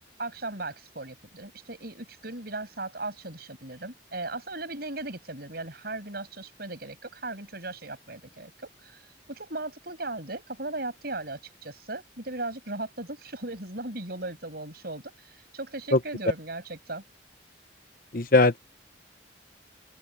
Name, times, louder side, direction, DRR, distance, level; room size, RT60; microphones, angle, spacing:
voice 1, 0.2-17.0, right 2 dB, 55° right, 7.3 m, -37 dB
voice 2, 18.1-18.6, left 2 dB, 50° left, 1.0 m, -19 dB
open air
head